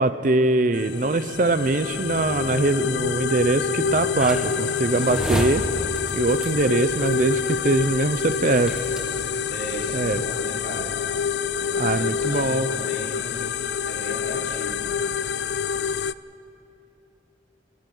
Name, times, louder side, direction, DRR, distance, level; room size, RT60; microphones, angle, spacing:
voice 1, 0.0-5.6 6.1-8.8 9.9-10.2 11.8-12.7, right 2 dB, 45° right, 11 dB, 0.6 m, -22 dB
sound 1, 0.7-16.1, left 6 dB, 75° left, 0.4 m, -27 dB
sound 2, 4.2-9.4, equal, 5° right, 1.3 m, -32 dB
voice 2, 9.5-11.0 11.5-13.4 13.9-14.8, equal, 55° left, -4 dB, 4.3 m, -36 dB
29.5 x 24.0 x 3.9 m, 2.8 s
head